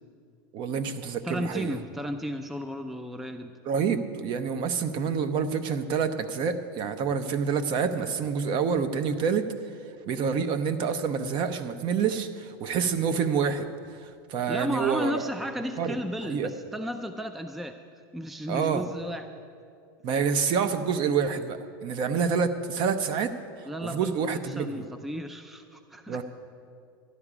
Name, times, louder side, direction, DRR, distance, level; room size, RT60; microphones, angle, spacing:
voice 1, 0.5-1.8 3.7-9.4 10.1-13.7 14.0-15.3 15.8-16.0 16.2-16.5 18.5-18.8 20.0-23.3 23.8-24.9 26.1-26.2, right 6 dB, 40° right, 10 dB, 0.8 m, -27 dB
voice 2, 1.2-3.5 5.7-5.8 14.5-17.8 18.1-19.3 23.7-26.2, equal, ahead, 8 dB, 0.4 m, -34 dB
12.5 x 11.0 x 5.0 m, 2.3 s
supercardioid pair, 130°, 12 cm